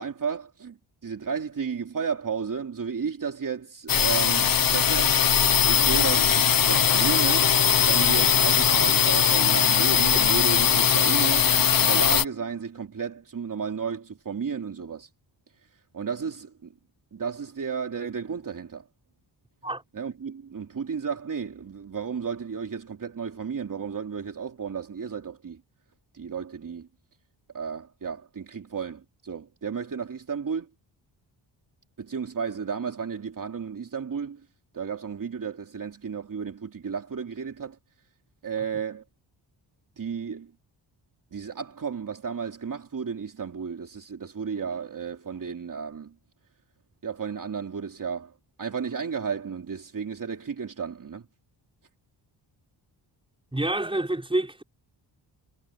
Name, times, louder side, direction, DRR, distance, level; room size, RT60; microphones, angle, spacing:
voice 1, 0.0-5.2 5.7-15.1 15.9-16.7 17.1-18.9 19.9-25.6 26.1-26.9 27.5-30.7 32.0-34.5 34.7-37.8 38.4-39.0 40.0-40.5 41.3-46.1 47.0-51.3, right 6 dB, 45° right, 3.1 m, -33 dB
sound 1, 3.9-12.2, left 8 dB, 50° left, 1.2 m, -20 dB
voice 2, 53.5-54.6, right 1 dB, 10° right, 5.5 m, -27 dB
cardioid pair, 100°, 45 cm